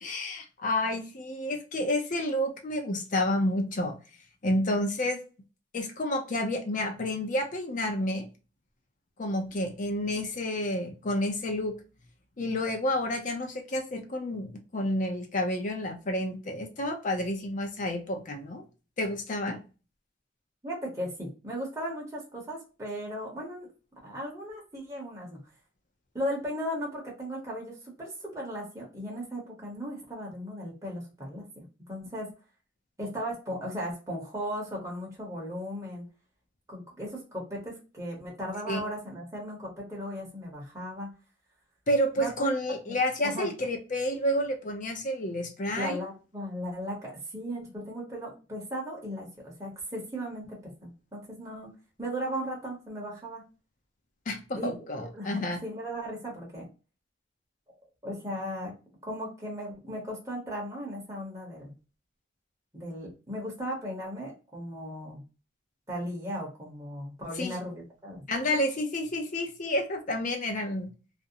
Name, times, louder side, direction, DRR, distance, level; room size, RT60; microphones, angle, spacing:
voice 1, 0.0-4.0 4.4-5.2 5.7-8.3 9.2-11.7 12.4-18.6 19.0-19.6 38.7-38.8 41.9-46.0 54.3-55.6 67.4-67.6 68.3-70.9, left 1 dB, 45° left, 4 dB, 0.6 m, -30 dB
voice 2, 20.6-23.7 24.0-25.4 26.1-32.3 33.0-36.0 36.7-41.1 42.2-42.3 42.9-43.0 43.2-43.5 45.8-51.7 52.0-53.4 54.5-56.7 58.0-58.7 59.0-61.7 62.7-65.2 65.9-68.2, equal, 15° right, -3 dB, 0.8 m, -37 dB
2.5 x 2.1 x 2.6 m, 0.33 s
head